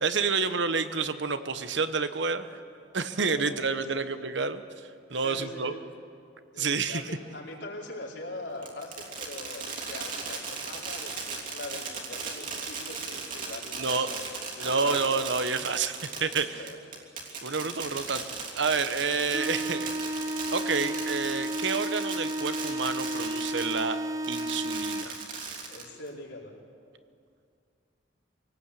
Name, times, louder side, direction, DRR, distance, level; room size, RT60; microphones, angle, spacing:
voice 1, 0.0-2.5 2.9-4.6 5.1-5.7 6.6-7.0 13.8-14.1 14.6-16.6 17.4-18.2 18.5-19.9 20.5-24.0 24.3-25.1, right 4 dB, 75° right, 10 dB, 1.2 m, -29 dB
voice 2, 3.2-4.1 5.1-5.8 6.5-15.1 16.3-17.0 19.0-19.2 25.7-26.5, left 2 dB, 70° left, -2 dB, 4.5 m, -42 dB
Fireworks, 8.6-23.8 24.2-26.1, right 5 dB, 45° right, 3.2 m, -37 dB
sound 1, 19.3-25.3, right 1 dB, 20° right, 0.8 m, -33 dB
25.0 x 18.5 x 8.5 m, 2.4 s
head